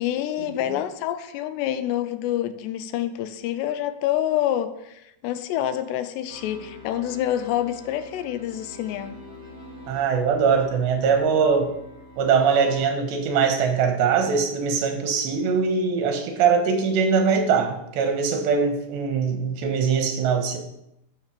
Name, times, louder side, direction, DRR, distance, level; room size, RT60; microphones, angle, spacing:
voice 1, 0.0-9.2, left 12 dB, 80° left, 11 dB, 2.8 m, -27 dB
sound 1, 6.3-12.9, left 1 dB, 40° right, 4.1 m, -45 dB
voice 2, 9.9-11.7 12.2-20.6, right 6 dB, 80° right, 5 dB, 3.7 m, -22 dB
12.0 x 5.9 x 6.8 m, 0.83 s
omnidirectional pair, 5.0 m